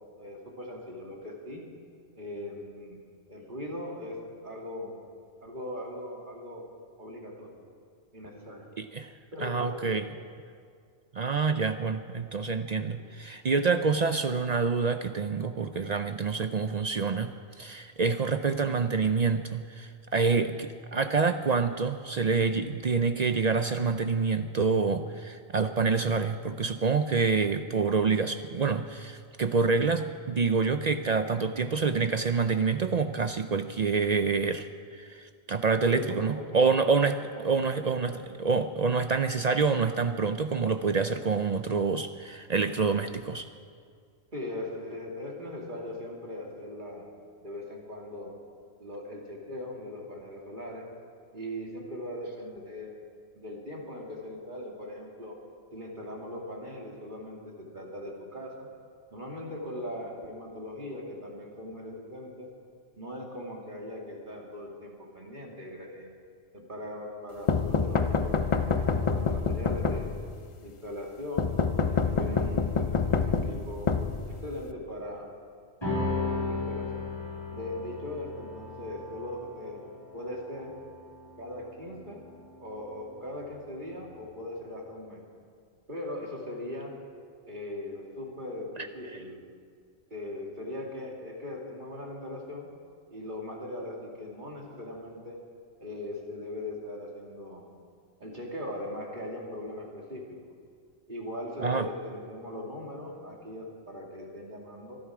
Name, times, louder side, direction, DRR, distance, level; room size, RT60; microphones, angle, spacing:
voice 1, 0.2-1.6 2.2-3.0 3.3-4.2 4.4-5.0 5.4-6.6 7.0-7.6 8.1-8.7 9.3-10.0 13.0-13.1 35.9-36.7 37.3-38.1 44.3-47.1 47.4-48.3 48.8-50.9 51.3-52.9 53.3-55.3 55.7-58.5 59.1-62.5 63.0-66.1 66.5-70.1 70.6-71.5 71.8-73.9 74.3-75.3 75.9-77.1 77.5-80.7 81.4-82.2 82.6-85.2 85.9-86.9 87.5-89.4 90.1-92.7 93.1-95.4 95.8-97.6 98.2-100.2 101.1-105.0, left 1 dB, 40° right, -1 dB, 2.5 m, -39 dB
voice 2, 8.8-9.1 9.4-10.1 11.1-34.7 34.9-43.5 88.8-88.9 101.6-101.9, right 4 dB, 55° right, 9 dB, 0.4 m, -27 dB
sound 1, 67.5-70.4 71.4-74.7, left 4 dB, 35° left, 0.5 m, -27 dB
sound 2, 75.8-82.5, left 3 dB, 20° left, 5.2 m, -36 dB
24.0 x 11.5 x 4.9 m, 2.1 s
omnidirectional pair, 1.3 m